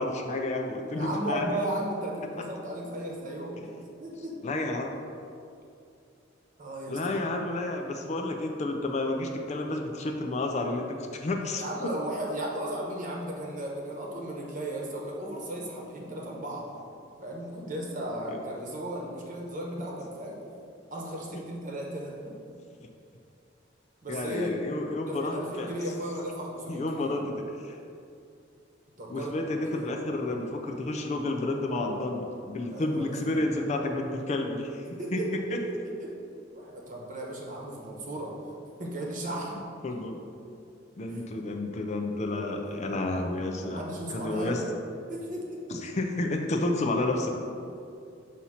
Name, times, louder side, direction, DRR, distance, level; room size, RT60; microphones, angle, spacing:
voice 1, 0.0-1.6 4.4-4.9 6.9-11.6 18.3-18.4 22.8-22.9 24.1-25.7 26.7-27.8 29.1-34.8 35.1-35.3 35.5-35.6 39.5-40.2 41.0-43.8 44.1-44.6 45.7-47.3, left 2 dB, 35° left, 3 dB, 0.4 m, -30 dB
voice 2, 0.9-3.7 4.0-4.4 6.6-7.0 11.6-16.7 17.2-20.4 20.9-22.3 24.0-24.6 25.1-27.2 29.0-29.4 29.6-29.9 32.7-33.5 35.0-35.4 36.0-36.1 36.5-38.3 38.8-39.5 39.8-40.0 41.1-41.2 42.6-42.8 43.6-44.5 45.1-45.8, right 1 dB, 45° right, -2 dB, 1.0 m, -35 dB
6.1 x 2.9 x 5.5 m, 2.5 s
head